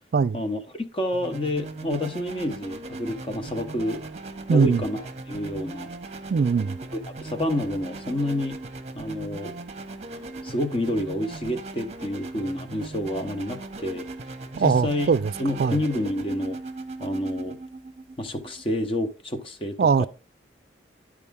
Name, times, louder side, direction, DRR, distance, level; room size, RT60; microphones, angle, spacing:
voice 1, 0.3-4.0 4.5-5.9 7.1-8.6 8.9-9.6 10.1-14.1 14.6-15.1 15.4-16.6 17.0-17.6 18.2-20.1, left 1 dB, 30° left, 0.8 m, -29 dB
sound 1, 1.1-18.9, right 2 dB, 35° right, 0.8 m, -38 dB
voice 2, 4.5-4.8 6.3-6.8 14.6-15.3 15.6-15.8 19.8-20.1, right 5 dB, 55° right, 0.3 m, -21 dB
11.0 x 4.8 x 3.6 m
head